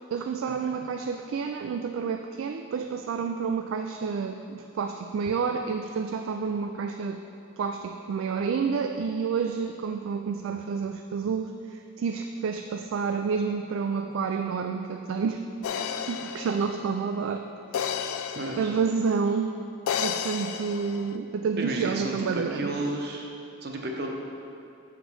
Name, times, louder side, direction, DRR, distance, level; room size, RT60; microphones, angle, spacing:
voice 1, 0.1-7.2 7.6-17.5 18.6-19.6 20.0-22.7, right 5 dB, 75° right, 6 dB, 0.3 m, -29 dB
sound 1, 15.6-19.2 19.9-21.2, left 8 dB, 90° left, 0.3 m, -33 dB
voice 2, 18.3-18.7 21.5-23.3 23.6-24.1, right 1 dB, 50° right, 1 dB, 0.8 m, -32 dB
7.1 x 5.0 x 5.4 m, 2.6 s
head